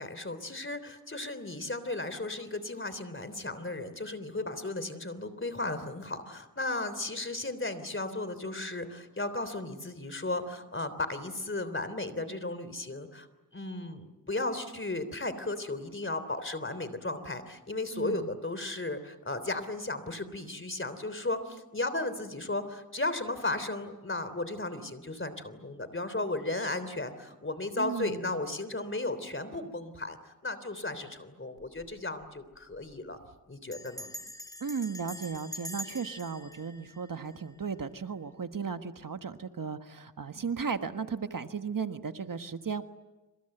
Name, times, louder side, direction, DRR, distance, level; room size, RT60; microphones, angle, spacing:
voice 1, 0.0-13.3 13.5-30.2 30.4-33.2 33.5-34.1, left 2 dB, 35° left, 12 dB, 3.3 m, -35 dB
voice 2, 17.9-18.3 27.8-28.3 34.6-42.8, right 5 dB, 70° right, 8 dB, 1.5 m, -35 dB
Bell, 31.6-31.9 32.2-32.3 32.5-32.9 33.7-37.8, left 1 dB, 10° left, 4.1 m, -45 dB
27.0 x 27.0 x 7.9 m, 1.1 s
wide cardioid pair, 60°, 34 cm